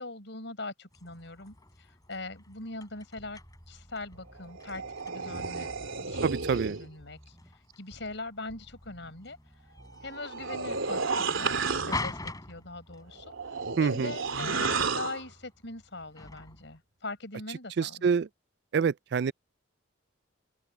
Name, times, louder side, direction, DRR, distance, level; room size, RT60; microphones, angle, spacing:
voice 1, 0.0-3.4 3.7-5.7 6.0-7.4 7.8-9.4 10.0-18.1, left 2 dB, 65° left, 5.3 m, -42 dB
sound 1, 0.9-16.8, left 3 dB, 20° left, 3.5 m, -45 dB
sound 2, 3.2-8.2 8.5-13.3, equal, 10° right, 7.9 m, -57 dB
sound 3, 4.3-6.9 10.0-12.1 13.1-15.3, right 4 dB, 85° right, 2.9 m, -32 dB
voice 2, 6.2-6.8 13.8-14.1 17.8-18.3 18.7-19.3, right 6 dB, 55° right, 0.3 m, -26 dB
open air
head